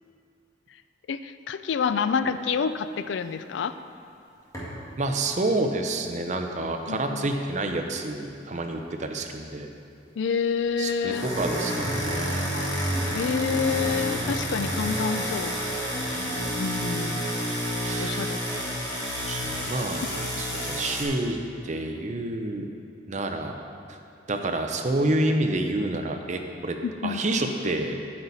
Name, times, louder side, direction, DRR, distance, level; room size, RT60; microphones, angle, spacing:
voice 1, 1.1-3.8 6.9-7.3 10.2-11.3 12.5-12.7 13.1-15.5 16.5-17.3 18.0-18.4 20.0-20.1 26.8-27.2, left 6 dB, 75° left, 11 dB, 0.4 m, -28 dB
sound 1, 4.5-4.8 10.9-21.0, equal, 20° left, 1.9 m, -29 dB
voice 2, 5.0-9.7 10.8-12.6 16.0-16.5 17.8-18.3 19.2-20.0 20.4-21.4 21.6-22.7 23.1-23.5 24.3-26.8 27.0-28.0, right 2 dB, 40° right, 4 dB, 0.7 m, -28 dB
8.7 x 8.4 x 4.1 m, 2.5 s
head